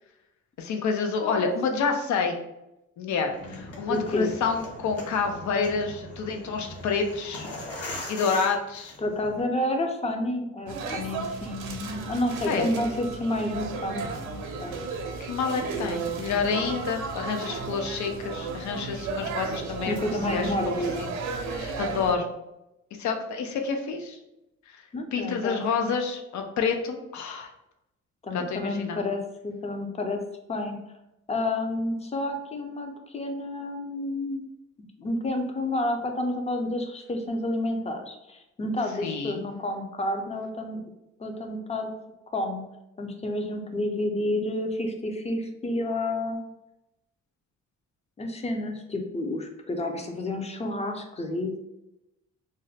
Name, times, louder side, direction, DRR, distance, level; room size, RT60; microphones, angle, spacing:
voice 1, 0.6-2.4 3.0-7.5 8.1-8.9 12.4-12.8 15.2-20.0 20.3-20.5 21.0-21.1 21.5-22.3 23.0-24.2 24.7-24.8 25.1-27.5 28.3-29.0 39.0-39.4, left 5 dB, 70° left, 4 dB, 0.6 m, -28 dB
sound 1, 3.2-9.4, left 1 dB, 50° left, 0.9 m, -40 dB
voice 2, 3.9-4.3 9.0-14.8 15.7-16.3 19.9-21.1 24.9-25.9 28.2-30.2 30.5-30.8 31.3-34.4 34.8-40.8 41.2-41.9 42.3-42.6 43.0-46.4 48.2-51.5, left 1 dB, 20° left, 4 dB, 0.5 m, -30 dB
sound 2, 10.7-22.1, right 4 dB, 85° right, 0.6 m, -34 dB
2.6 x 2.1 x 3.9 m, 0.90 s
cardioid pair, 90°, 30 cm